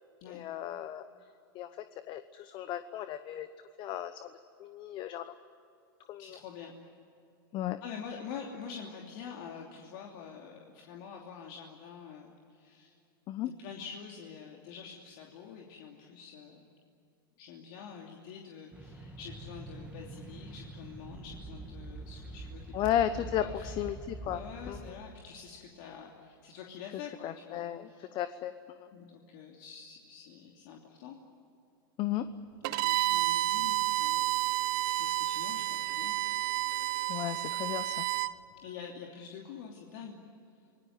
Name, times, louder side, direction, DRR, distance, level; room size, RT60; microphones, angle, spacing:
voice 1, 0.3-1.0 1.5-3.5 3.8-4.3 4.6-5.3 6.1-6.4 7.5-7.8 13.3-13.5 22.7-24.9 27.2-28.9 32.0-32.3 37.1-38.1, left 11 dB, 40° left, 11 dB, 1.0 m, -35 dB
voice 2, 6.2-6.8 7.8-13.0 13.6-16.7 17.4-22.7 23.1-23.7 24.2-28.1 28.9-31.2 32.6-34.3 34.9-36.1 38.6-40.2, left 7 dB, 60° left, 0 dB, 3.0 m, -46 dB
sound 1, 18.7-25.0, right 2 dB, 10° right, 2.4 m, -45 dB
Bowed string instrument, 32.6-38.3, right 16 dB, 60° right, 0.9 m, -30 dB
27.5 x 19.5 x 9.5 m, 2.6 s
hypercardioid pair, 115°, 12 cm